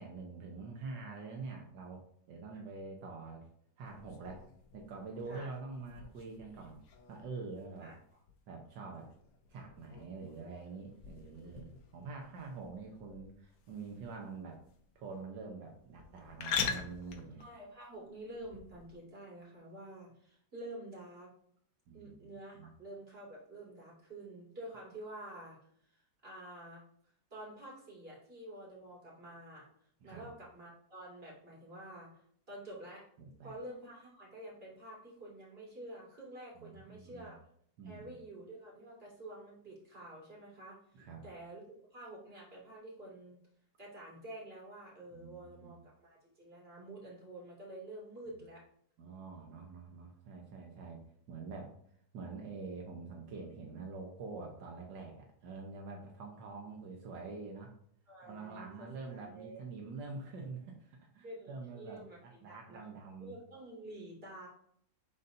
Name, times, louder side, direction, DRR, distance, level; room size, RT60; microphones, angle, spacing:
voice 1, 0.0-3.5 3.8-4.4 4.7-6.8 7.1-7.9 8.5-9.1 9.5-11.7 11.9-14.6 14.9-17.4 21.9-22.3 22.6-22.7 30.0-30.3 33.2-33.5 36.5-37.3 37.8-38.1 40.9-41.2 45.1-45.8 49.0-51.0 51.3-51.7 52.1-57.7 58.2-63.3, right 4 dB, 80° right, 1 dB, 1.6 m, -46 dB
sound 1, 3.9-18.9, left 6 dB, 70° left, 1.4 m, -45 dB
voice 2, 17.4-21.3 21.9-25.6 25.9-26.8 27.3-33.1 33.4-37.4 37.8-43.4 43.8-48.6 58.1-59.6 61.2-64.5, right 1 dB, 30° right, -5 dB, 2.7 m, -49 dB
10.5 x 4.0 x 2.7 m, 0.66 s
omnidirectional pair, 1.9 m